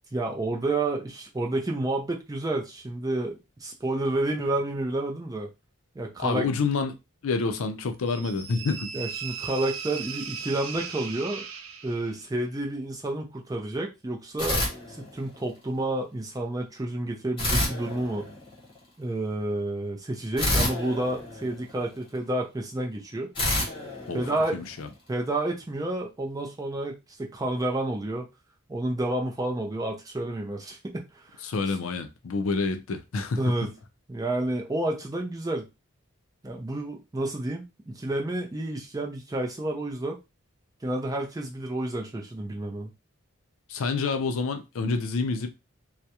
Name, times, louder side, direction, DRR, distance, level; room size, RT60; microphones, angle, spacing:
voice 1, 0.1-5.5 6.0-6.5 8.9-11.5 11.8-18.3 19.0-23.3 24.1-24.6 25.1-28.3 28.7-31.4 33.4-33.7 34.1-35.7 36.4-40.2 40.8-42.9, right 2 dB, 15° right, 0.4 m, -30 dB
voice 2, 6.2-6.9 7.2-8.9 24.1-24.2 24.5-24.9 31.4-33.4 43.7-45.5, left 4 dB, 75° left, 0.4 m, -28 dB
sound 1, 8.1-12.2, right 7 dB, 80° right, 0.4 m, -37 dB
sound 2, 14.4-15.5 17.4-18.8 20.4-22.1 23.3-24.9, left 1 dB, 25° left, 0.9 m, -29 dB
2.3 x 2.0 x 2.8 m
head